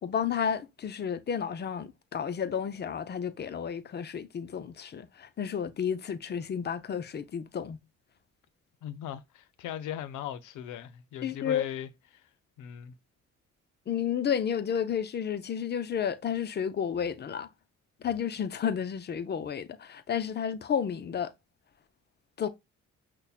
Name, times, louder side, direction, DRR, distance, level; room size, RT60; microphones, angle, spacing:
voice 1, 0.0-7.8 11.2-11.7 13.9-17.5 18.0-21.3 22.4-22.5, left 8 dB, 35° left, 0.5 m, -31 dB
voice 2, 8.8-12.2 12.6-13.0, left 10 dB, 80° left, 0.6 m, -39 dB
5.4 x 2.2 x 2.2 m
cardioid pair, 90°, 30 cm